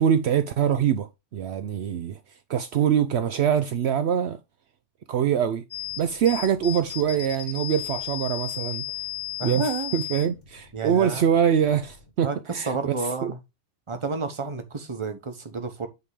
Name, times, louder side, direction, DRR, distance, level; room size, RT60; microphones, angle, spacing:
voice 1, 0.0-2.2 2.5-4.4 5.1-5.6 6.0-8.9 9.4-12.9 13.2-13.3, right 8 dB, 65° right, 0.9 m, -24 dB
sound 1, 5.7-12.1, left 13 dB, 75° left, 1.8 m, -35 dB
voice 2, 9.4-9.9 10.7-11.2 12.2-13.4 13.9-15.9, right 4 dB, 25° right, 1.1 m, -30 dB
8.2 x 3.6 x 4.8 m
omnidirectional pair, 1.2 m